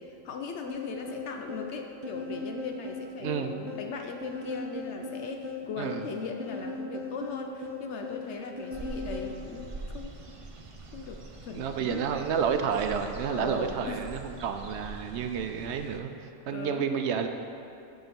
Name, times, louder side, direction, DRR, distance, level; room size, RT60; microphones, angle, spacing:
voice 1, 0.0-10.1 10.9-12.1 13.3-14.0 16.5-16.9, left 5 dB, 70° left, 4 dB, 0.9 m, -39 dB
sound 1, 0.7-9.4, left 2 dB, 10° right, 1.0 m, -38 dB
voice 2, 3.2-3.5 5.8-6.0 11.5-16.1 16.5-17.3, right 7 dB, 70° right, 7 dB, 0.8 m, -30 dB
sound 2, 8.7-16.0, right 2 dB, 40° right, 0.5 m, -43 dB
10.5 x 3.8 x 6.8 m, 2.7 s
omnidirectional pair, 1.2 m